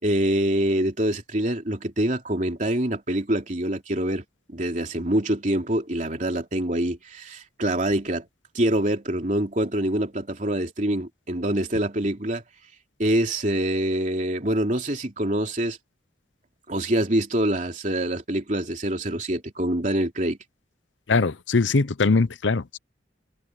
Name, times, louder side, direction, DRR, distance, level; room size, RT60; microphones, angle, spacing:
voice 1, 0.0-4.2 4.5-8.3 8.5-12.4 13.0-15.8 16.7-20.4, right 1 dB, 40° right, 3.2 m, -25 dB
voice 2, 21.1-22.8, left 4 dB, 80° left, 0.8 m, -21 dB
head